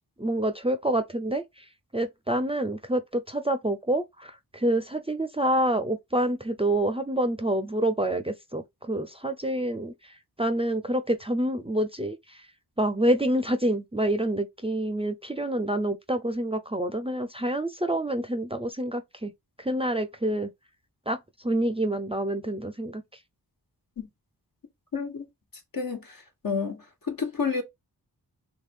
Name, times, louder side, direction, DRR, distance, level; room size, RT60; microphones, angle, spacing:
voice 1, 0.2-1.7 1.9-12.5 12.8-19.3 19.6-20.5 21.1-23.0, right 1 dB, 15° right, 0.5 m, -27 dB
voice 2, 24.9-25.3 25.7-27.6, left 5 dB, 60° left, 1.5 m, -30 dB
3.1 x 2.6 x 3.5 m
cardioid pair, 50°, 39 cm